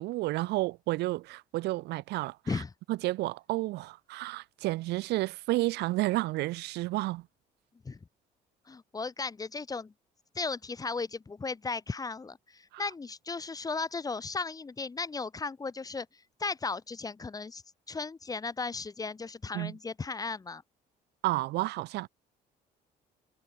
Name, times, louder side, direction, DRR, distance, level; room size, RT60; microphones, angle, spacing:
voice 1, 0.0-2.6 2.9-7.3 12.7-12.8 19.5-19.7 21.2-22.1, right 19 dB, 85° right, 1.4 m, -31 dB
voice 2, 8.7-9.9 10.3-17.6 17.9-20.6, left 4 dB, 20° left, 1.2 m, -36 dB
cardioid pair, 110°, 17 cm